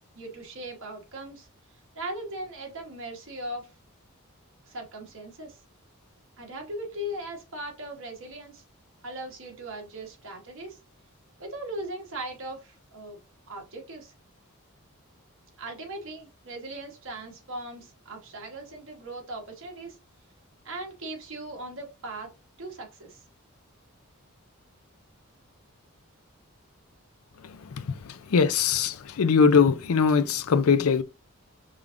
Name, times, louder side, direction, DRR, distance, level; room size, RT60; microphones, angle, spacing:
voice 1, 0.1-1.5 1.9-3.7 4.7-5.6 6.4-8.6 9.0-10.8 11.4-13.2 13.5-14.1 15.6-20.0 20.6-22.3 22.6-23.2, right 1 dB, 60° right, 1.3 m, -39 dB
voice 2, 28.3-31.0, left 6 dB, 75° left, 0.5 m, -21 dB
4.9 x 3.6 x 2.5 m
head